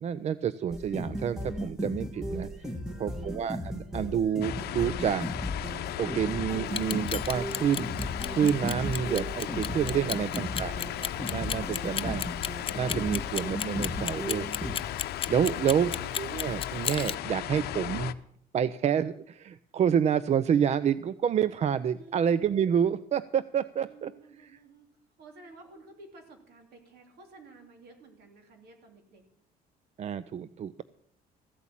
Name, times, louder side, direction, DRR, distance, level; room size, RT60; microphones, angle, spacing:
voice 1, 0.0-2.5 3.0-5.3 6.0-7.9 8.3-12.2 12.7-14.5 15.3-18.1 18.5-24.1 30.0-30.8, right 8 dB, 40° right, 16 dB, 0.5 m, -28 dB
sound 1, 0.7-14.8, equal, 5° right, 1.6 m, -36 dB
voice 2, 2.7-3.2 21.9-22.3 23.9-24.9 25.2-29.2, right 3 dB, 70° right, 4 dB, 3.2 m, -53 dB
sound 2, 4.4-18.1, left 12 dB, 70° left, 0.7 m, -36 dB
Clock, 6.7-17.1, left 8 dB, 30° left, 0.5 m, -33 dB
15.0 x 8.2 x 7.3 m, 0.65 s
cardioid pair, 110°, 17 cm